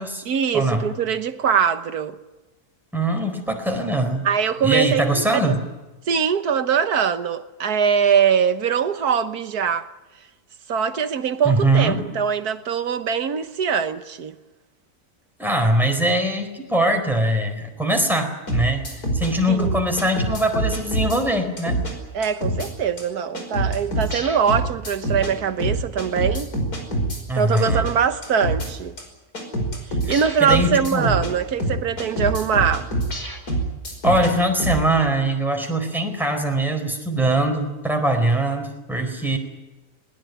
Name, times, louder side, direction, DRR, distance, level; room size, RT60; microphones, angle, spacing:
voice 1, 0.2-2.2 4.2-5.5 6.1-9.9 10.7-14.3 19.5-19.8 22.1-26.5 27.3-28.9 30.1-32.9, right 7 dB, 80° right, 1.7 m, -22 dB
voice 2, 2.9-4.3 4.6-5.6 11.4-12.0 15.4-21.8 27.3-27.9 30.0-31.1 34.0-39.4, right 1 dB, ahead, 4.3 m, -22 dB
sound 1, 18.5-19.3 19.6-21.2 21.6-21.9 22.2-22.7 23.0-23.1 23.3-25.3 25.6-27.2 27.6-27.9 28.2-28.7 29.0-29.1 29.3-31.3 31.6-34.3 34.6-34.8, right 1 dB, 80° left, 5.7 m, -25 dB
21.5 x 20.0 x 9.3 m
omnidirectional pair, 1.6 m